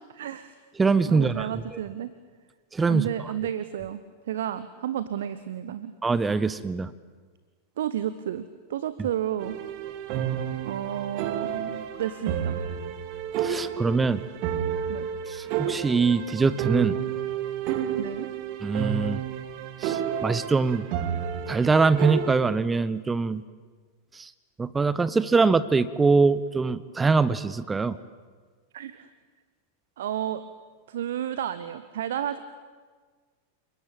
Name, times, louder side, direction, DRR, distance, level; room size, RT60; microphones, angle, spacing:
voice 1, 0.0-0.6 1.1-2.1 2.9-5.9 7.8-8.4 8.7-9.6 10.6-12.6 14.9-15.1 18.0-18.3 28.7-29.1 30.0-30.4 30.9-32.4, right 10 dB, 60° right, 14 dB, 1.0 m, -31 dB
voice 2, 0.8-1.5 2.7-3.1 6.0-6.9 13.4-14.2 15.3-17.0 18.6-19.2 19.8-20.9 21.5-23.4 24.1-24.3 24.6-28.0, right 4 dB, 15° right, 17 dB, 0.8 m, -23 dB
sound 1, 9.4-22.3, right 9 dB, 45° right, 2.2 m, -30 dB
29.5 x 21.0 x 9.0 m, 1.5 s
figure-of-eight pair, 90°, 0 cm